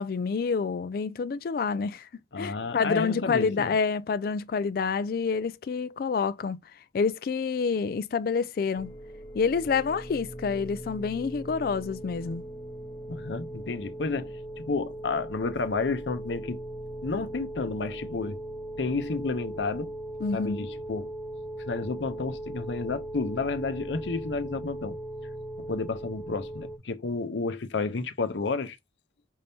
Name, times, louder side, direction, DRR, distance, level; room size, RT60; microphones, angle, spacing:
voice 1, 0.0-2.1 2.4-6.6 6.9-8.9 9.3-12.4 20.2-20.7, left 5 dB, 55° left, 0.3 m, -28 dB
voice 2, 2.3-3.7 13.1-16.6 17.0-18.4 18.8-19.9 20.3-21.1 21.7-25.0 25.6-28.8, left 3 dB, 80° left, 0.7 m, -31 dB
sound 1, 8.7-26.8, right 1 dB, 25° left, 0.8 m, -39 dB
5.5 x 2.7 x 3.4 m
head